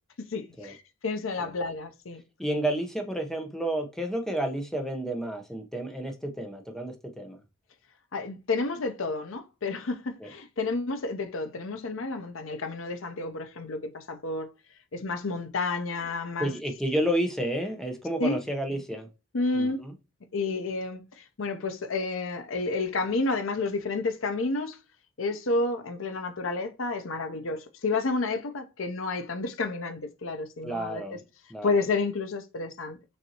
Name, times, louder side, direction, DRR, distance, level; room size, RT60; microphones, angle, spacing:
voice 1, 0.3-2.2 8.1-14.5 14.9-16.5 18.2-18.4 19.3-19.8 20.3-24.8 25.2-31.2 31.6-33.0, left 3 dB, 70° left, 0.7 m, -30 dB
voice 2, 2.4-7.4 10.2-10.3 16.4-19.1 19.5-19.9 30.6-31.2 31.5-31.7, right 1 dB, ahead, 0.8 m, -31 dB
6.4 x 2.7 x 2.9 m
head